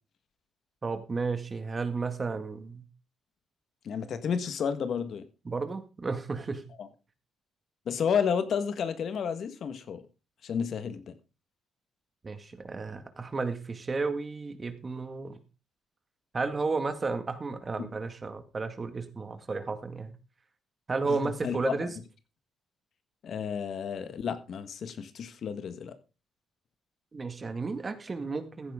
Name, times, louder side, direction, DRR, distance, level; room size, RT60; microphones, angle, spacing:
voice 1, 0.8-2.9 5.5-6.6 12.2-15.3 16.3-20.1 20.9-21.9 27.1-28.7, right 4 dB, 30° right, 2.0 m, -33 dB
voice 2, 3.8-5.3 6.8-6.9 7.9-10.0 10.4-11.2 21.1-21.8 23.2-26.0, left 7 dB, 60° left, 1.5 m, -31 dB
15.0 x 10.5 x 3.7 m
cardioid pair, 90°, 0 cm